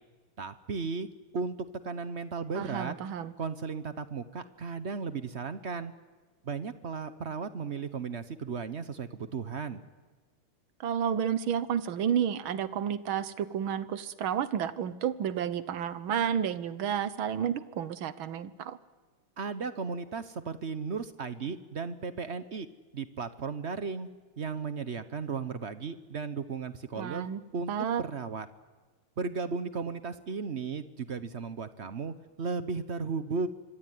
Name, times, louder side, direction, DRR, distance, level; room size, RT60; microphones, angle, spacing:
voice 1, 0.4-1.1 1.3-1.5 1.8-2.9 3.4-5.9 6.4-9.8 19.4-22.7 22.9-24.1 24.4-27.3 27.5-27.7 28.0-28.5 29.2-33.5, right 5 dB, 50° right, 12 dB, 0.8 m, -35 dB
voice 2, 2.6-3.3 10.8-18.8 27.0-27.4 27.7-28.0, right 8 dB, 70° right, 14 dB, 1.8 m, -31 dB
26.0 x 23.5 x 9.4 m, 1.3 s
omnidirectional pair, 2.4 m